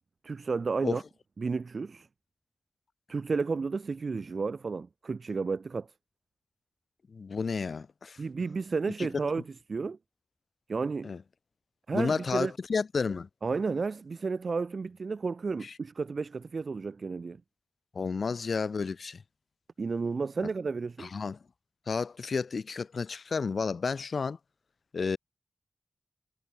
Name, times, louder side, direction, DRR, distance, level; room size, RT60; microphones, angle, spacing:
voice 1, 0.2-1.0 1.4-2.1 3.1-5.9 8.2-9.4 9.7-10.0 10.7-11.1 11.9-12.5 13.4-17.4 19.8-21.1, right 4 dB, 70° right, 0.7 m, -32 dB
voice 2, 7.1-8.2 9.0-9.1 11.0-11.2 11.9-13.3 15.6-15.7 17.9-19.2 21.0-21.4 21.9-24.4 24.9-25.2, left 5 dB, 80° left, 2.7 m, -31 dB
wide cardioid pair, 95°, 0 cm